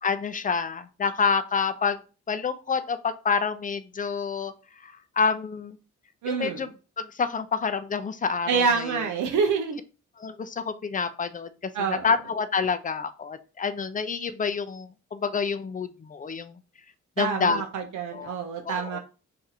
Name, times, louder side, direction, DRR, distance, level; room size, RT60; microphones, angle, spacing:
voice 1, 0.0-2.0 2.3-4.5 5.2-5.8 6.3-6.7 7.0-9.0 10.2-11.5 11.9-16.6 17.2-17.6 18.1-18.4 18.6-19.0, left 5 dB, 25° left, 10 dB, 0.4 m, -28 dB
voice 2, 6.2-6.7 8.5-9.8 11.7-12.1 17.2-19.0, right 5 dB, 75° right, 3 dB, 0.6 m, -27 dB
2.7 x 2.4 x 4.0 m, 0.34 s
cardioid pair, 60°, 31 cm